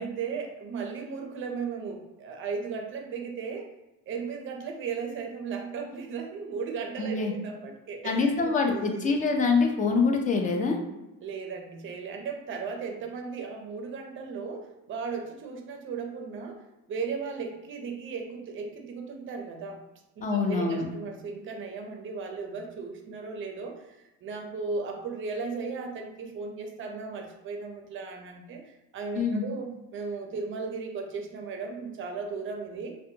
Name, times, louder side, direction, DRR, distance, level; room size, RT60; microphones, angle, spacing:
voice 1, 0.0-3.7 4.1-9.1 11.2-16.6 16.9-19.8 20.2-32.9, right 5 dB, 40° right, 2 dB, 0.5 m, -36 dB
voice 2, 7.0-7.3 8.0-10.8 20.2-20.9 29.1-29.4, left 4 dB, 25° left, 3 dB, 0.3 m, -25 dB
2.6 x 2.1 x 2.6 m, 0.98 s
cardioid pair, 135°, 32 cm